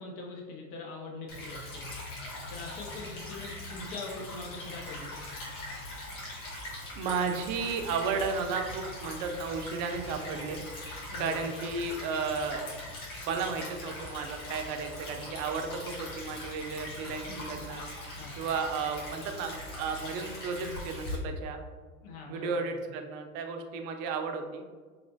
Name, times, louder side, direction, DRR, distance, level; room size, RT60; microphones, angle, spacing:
voice 1, 0.0-1.9 2.5-5.1 11.1-11.4 17.3-17.6 18.2-18.4 22.0-22.7, left 3 dB, 50° left, 0 dB, 0.7 m, -42 dB
Stream / Trickle dribble, 1.3-21.2, left 1 dB, 70° left, 1.3 m, -41 dB
voice 2, 6.9-10.6 11.2-12.7 13.2-17.8 18.4-21.6 22.3-24.6, right 5 dB, 45° right, 5 dB, 0.5 m, -33 dB
sound 1, 8.2-8.3 8.7-8.8 9.3-9.4 9.9-10.0 10.5-10.6 11.1-11.2 11.7-11.8 12.3-12.4 12.9-13.0 13.4-13.5 13.9-14.2 14.5-14.6 15.1-15.2 15.7-15.8 16.3-16.4 16.8-16.9 17.3-17.4, right 2 dB, ahead, 0.8 m, -52 dB
3.1 x 2.9 x 2.6 m, 1.5 s
hypercardioid pair, 90°, 44 cm